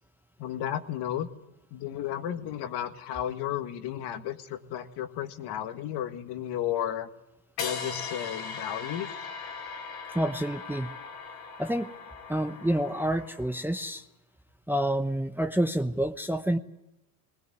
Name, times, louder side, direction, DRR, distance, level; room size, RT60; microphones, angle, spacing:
voice 1, 0.4-1.3 1.7-7.1 7.6-9.3, left 11 dB, 55° left, 8 dB, 1.9 m, -33 dB
sound 1, 7.6-13.7, left 5 dB, 85° left, 4.2 m, -39 dB
voice 2, 10.1-10.9 11.6-11.9 12.3-14.1 14.7-16.6, right 1 dB, 5° right, 7 dB, 1.0 m, -28 dB
20.0 x 19.0 x 9.4 m, 0.90 s
hypercardioid pair, 85°, 47 cm